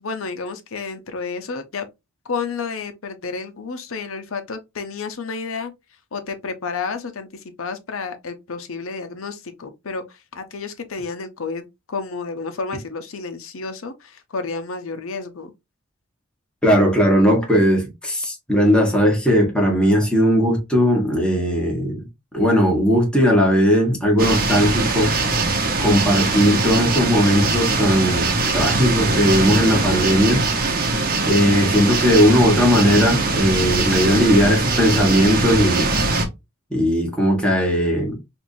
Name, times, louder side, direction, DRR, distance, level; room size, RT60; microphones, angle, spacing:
voice 1, 0.0-1.9 2.2-5.7 6.1-15.5, left 4 dB, 75° left, 0.7 m, -31 dB
voice 2, 16.6-22.0 22.3-25.1 25.8-30.4 31.2-35.9 36.7-38.2, equal, 5° left, 1.3 m, -18 dB
sound 1, 24.2-36.3, right 3 dB, 45° right, 0.9 m, -21 dB
4.5 x 2.6 x 2.6 m
head